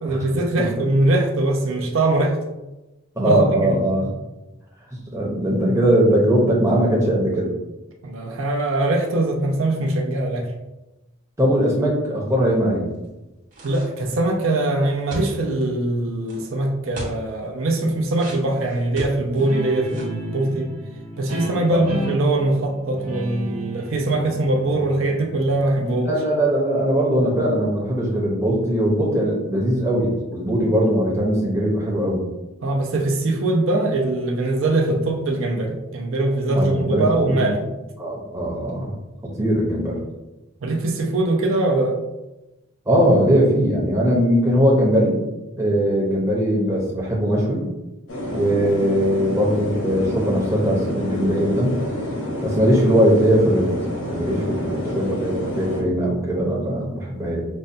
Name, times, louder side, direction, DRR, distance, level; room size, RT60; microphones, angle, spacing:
voice 1, 0.0-2.4 3.2-3.8 8.0-10.5 13.6-20.7 21.2-26.1 32.6-37.7 40.6-42.0, right 2 dB, 70° right, 1 dB, 0.5 m, -22 dB
voice 2, 3.2-4.1 5.1-7.5 11.4-12.8 21.7-21.8 25.8-32.2 36.5-37.4 38.0-38.9 39.4-40.0 42.9-45.2 45.6-47.7 48.3-51.8 52.4-53.7 54.0-57.4, equal, 15° right, -4 dB, 0.7 m, -20 dB
sound 1, 13.5-14.2 15.1-15.6 16.2-16.4 16.9-17.2 18.1-19.5 19.8-20.2, equal, 40° right, 1.0 m, -36 dB
Guitar, 19.3-26.5, equal, 85° right, 1.1 m, -34 dB
sound 2, 48.1-55.8, left 1 dB, 85° left, 0.9 m, -28 dB
5.3 x 2.2 x 2.6 m, 1.0 s
head